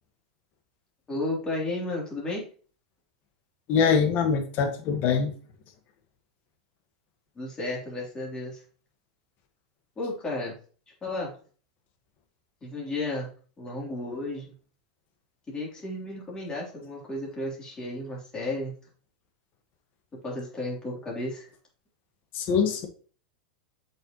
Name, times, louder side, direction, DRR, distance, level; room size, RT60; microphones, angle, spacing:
voice 1, 1.1-2.4 7.3-8.6 10.0-10.6 11.0-11.3 12.6-13.3 13.6-14.5 15.5-18.7 20.2-21.5, left 2 dB, 15° left, -3 dB, 3.3 m, -33 dB
voice 2, 3.7-5.3 22.3-22.9, left 6 dB, 45° left, 6 dB, 1.6 m, -23 dB
7.7 x 5.7 x 3.1 m, 0.41 s
supercardioid pair, 135°, 5 cm